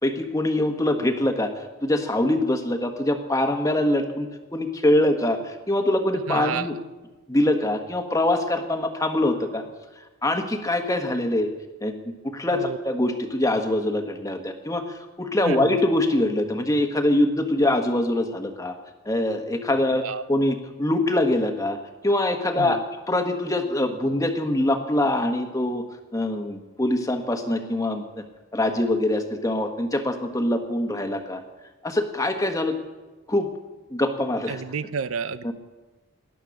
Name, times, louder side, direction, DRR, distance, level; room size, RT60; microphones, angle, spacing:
voice 1, 0.0-1.5 1.8-6.7 7.3-9.6 10.2-11.5 11.8-11.9 12.2-18.7 19.0-20.0 20.3-21.8 22.0-22.8 23.1-25.8 26.1-28.2 28.5-31.4 31.8-32.8 33.3-33.5 33.9-34.6 35.4-35.5, left 1 dB, 15° left, 6 dB, 1.4 m, -24 dB
voice 2, 6.3-6.7 12.5-12.8 15.4-15.8 20.0-20.2 22.6-22.8 34.5-35.5, right 5 dB, 80° right, 14 dB, 0.6 m, -30 dB
19.0 x 11.5 x 6.4 m, 1.2 s
head